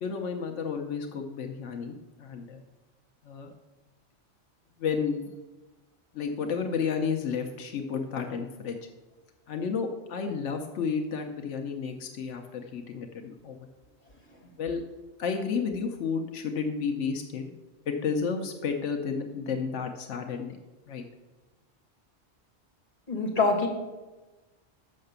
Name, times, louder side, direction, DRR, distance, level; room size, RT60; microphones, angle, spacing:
voice 1, 0.0-2.6 3.2-3.5 4.8-5.3 6.1-8.8 9.5-13.6 14.6-14.8 15.2-17.5 17.9-20.6 20.9-21.0, left 5 dB, 90° left, 4 dB, 1.0 m, -31 dB
voice 2, 23.1-23.7, left 3 dB, 45° left, 1 dB, 1.8 m, -25 dB
6.5 x 5.7 x 6.6 m, 1.1 s
omnidirectional pair, 1.2 m